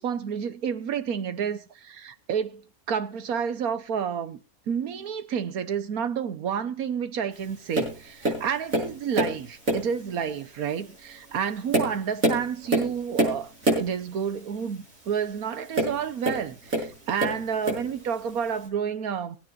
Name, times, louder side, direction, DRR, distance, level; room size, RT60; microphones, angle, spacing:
voice 1, 0.0-2.6 2.9-19.4, right 7 dB, 90° right, 1.5 m, -30 dB
Tap, 7.7-9.4 9.7-10.0 10.7-10.8 11.4-13.9 15.7-16.9 17.2-17.9 18.7-18.8, right 1 dB, 70° right, 7.1 m, -26 dB
24.0 x 9.5 x 2.6 m
omnidirectional pair, 1.5 m